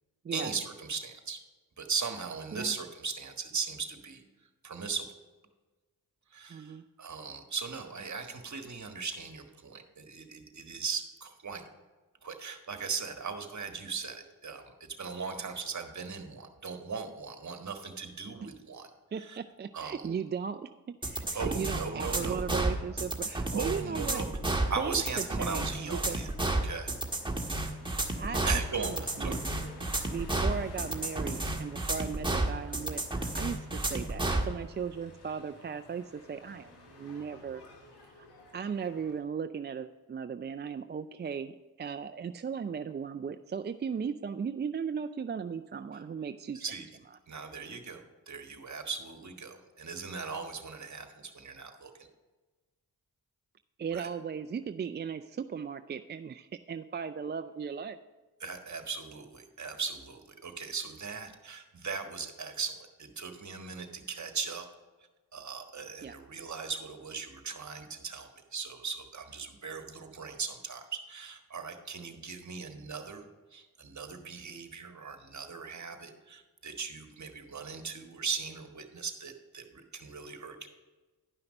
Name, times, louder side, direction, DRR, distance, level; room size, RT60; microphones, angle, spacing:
voice 1, 0.3-1.4 1.8-4.2 4.6-5.0 6.3-11.6 12.2-18.9 19.2-19.4 19.7-20.1 21.3-22.4 23.5-24.3 24.7-26.9 27.6-27.7 28.5-29.4 46.5-46.9 47.3-52.1 53.9-54.1 58.4-64.7 65.3-80.7, right 5 dB, 45° right, 6 dB, 1.4 m, -38 dB
voice 2, 6.5-6.8 19.1-24.2 24.5-26.2 28.1-29.4 30.1-37.6 38.2-38.3 38.5-46.7 53.8-58.0 66.0-66.1, right 6 dB, 30° right, 9 dB, 0.4 m, -37 dB
sound 1, 21.0-34.5, right 2 dB, 10° right, 1.5 m, -31 dB
sound 2, 24.6-39.2, left 2 dB, 85° left, 1.6 m, -53 dB
11.0 x 5.7 x 5.3 m, 1.2 s
supercardioid pair, 45°, 38 cm